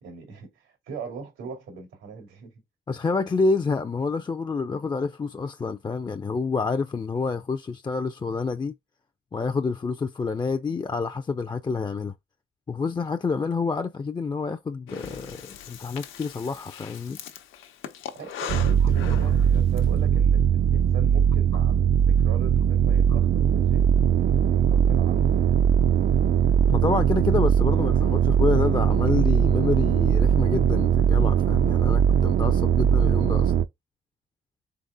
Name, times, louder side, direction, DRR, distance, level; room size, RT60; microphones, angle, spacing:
voice 1, 0.0-2.5 18.1-24.3 24.6-25.6, right 5 dB, 90° right, 2.2 m, -40 dB
voice 2, 2.9-8.7 9.3-12.1 12.7-17.2 26.7-33.5, left 4 dB, 20° left, 0.4 m, -28 dB
Breathing, 14.9-19.8, left 9 dB, 85° left, 0.9 m, -39 dB
sound 1, 18.5-33.6, right 8 dB, 55° right, 0.5 m, -20 dB
4.0 x 3.6 x 3.5 m
cardioid pair, 90°, 20 cm